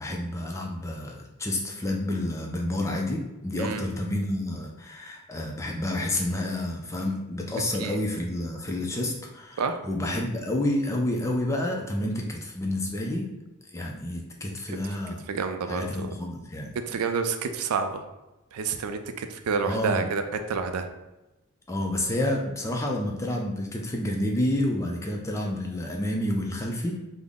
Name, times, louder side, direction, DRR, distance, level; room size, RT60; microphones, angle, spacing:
voice 1, 0.0-13.3 13.7-15.2 15.7-16.8 19.7-20.1 21.7-27.0, left 1 dB, 15° left, 0 dB, 0.3 m, -29 dB
voice 2, 15.3-16.1 16.8-18.0 18.5-20.2 20.5-20.9, right 5 dB, 80° right, 7 dB, 0.4 m, -29 dB
3.6 x 2.0 x 3.5 m, 1.0 s
head